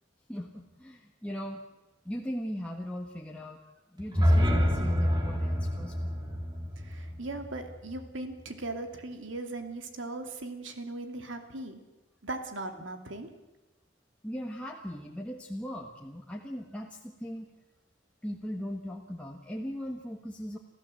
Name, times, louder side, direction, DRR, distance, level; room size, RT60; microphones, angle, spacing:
voice 1, 0.3-1.6 2.0-3.6 3.9-6.2 14.2-17.5 18.2-20.6, equal, 5° left, -1 dB, 1.5 m, -38 dB
sound 1, 4.0-8.0, equal, 20° right, 3.1 m, -27 dB
voice 2, 6.8-11.8 12.2-13.3, right 2 dB, 85° right, 6 dB, 2.6 m, -38 dB
28.0 x 15.0 x 7.7 m, 1.1 s
head